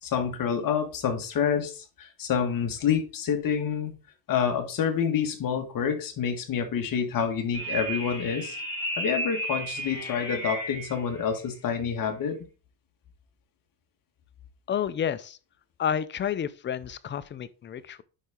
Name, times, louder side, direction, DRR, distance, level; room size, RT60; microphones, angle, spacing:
voice 1, 0.0-3.9 4.3-8.6 9.0-12.4, left 7 dB, 45° left, 1.8 m, -28 dB
sound 1, 7.5-11.0, right 1 dB, 10° left, 2.7 m, -33 dB
voice 2, 14.7-15.4 15.8-18.0, left 8 dB, 25° left, 0.5 m, -30 dB
10.5 x 4.1 x 3.7 m
cardioid pair, 120°, 46 cm